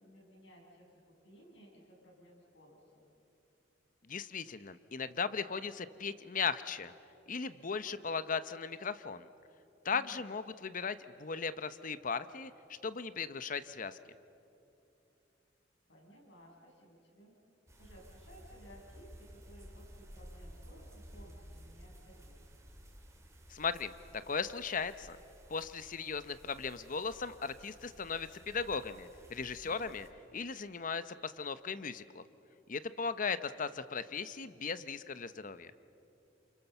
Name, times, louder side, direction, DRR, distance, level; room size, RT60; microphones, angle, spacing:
voice 1, 0.0-3.1 9.9-10.3 15.9-17.3 17.8-22.5 29.6-29.9, equal, 70° left, -2 dB, 7.3 m, -58 dB
voice 2, 4.1-6.9 7.3-9.3 9.8-12.5 12.8-14.0 23.5-25.2 25.5-30.1 30.3-32.2 32.7-35.7, left 5 dB, 45° left, 13 dB, 0.8 m, -37 dB
sound 1, 17.7-30.1, equal, 15° right, 3.0 m, -55 dB
29.0 x 28.0 x 7.0 m, 2.8 s
head